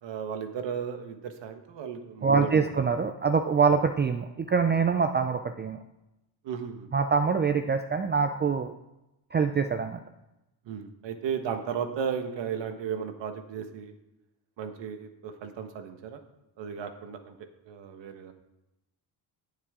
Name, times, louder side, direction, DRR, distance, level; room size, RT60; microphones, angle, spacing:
voice 1, 0.0-2.8 6.4-6.9 10.7-13.9 14.6-16.2 16.6-17.4 17.6-18.3, right 7 dB, 80° right, 7 dB, 1.4 m, -35 dB
voice 2, 2.2-5.8 6.9-8.7 9.3-10.0, right 5 dB, 25° right, 8 dB, 0.4 m, -25 dB
18.5 x 7.3 x 3.7 m, 0.92 s
cardioid pair, 125°, 43 cm